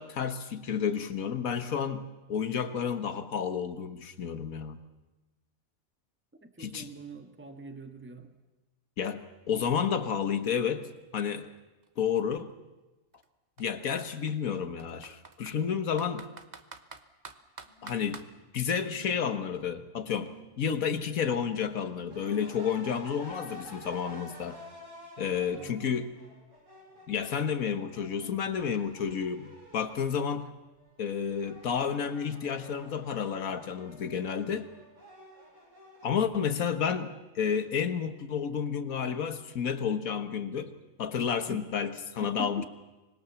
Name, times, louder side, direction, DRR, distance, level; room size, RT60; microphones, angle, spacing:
voice 1, 0.0-4.8 6.6-6.9 9.0-10.9 11.1-11.5 12.0-12.5 13.6-16.3 17.8-18.3 18.5-24.6 25.2-26.1 27.1-30.5 31.0-34.7 36.0-40.7 41.0-42.6, left 7 dB, 80° left, 10 dB, 1.7 m, -31 dB
voice 2, 6.4-8.4 25.5-25.8 41.5-41.6 42.2-42.6, right 2 dB, 10° right, 6 dB, 1.5 m, -43 dB
Computer keyboard, 10.0-10.1 10.4-12.3 13.1-13.3 13.6-13.7 14.3-15.6 16.0-18.3, right 4 dB, 35° right, 1.1 m, -48 dB
sound 1, 17.6-18.2 18.9-19.6 20.0-20.4 21.2-22.8 24.0-24.1, right 2 dB, 35° left, 3.0 m, -52 dB
sound 2, 22.1-30.2 30.6-36.1, equal, 65° right, 8.1 m, -50 dB
25.5 x 20.5 x 7.1 m, 1.1 s
omnidirectional pair, 1.4 m